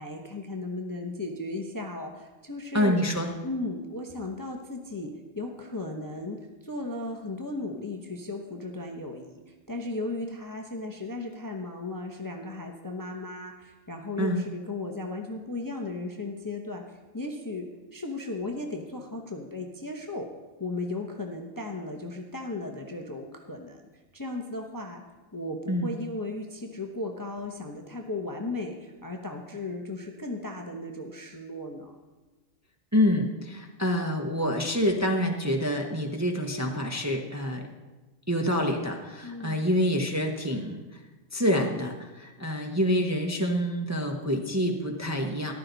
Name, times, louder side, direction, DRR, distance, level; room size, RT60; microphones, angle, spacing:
voice 1, 0.0-3.0 3.4-6.4 6.6-17.7 17.9-20.3 20.6-23.9 24.1-25.0 25.3-31.9 39.2-39.6, left 2 dB, 15° left, 2 dB, 0.9 m, -36 dB
voice 2, 2.7-3.3 14.2-14.4 25.7-25.9 32.9-37.6 38.3-41.0 41.3-45.5, equal, 15° right, 2 dB, 0.9 m, -27 dB
14.5 x 11.5 x 4.0 m, 1.2 s
omnidirectional pair, 1.4 m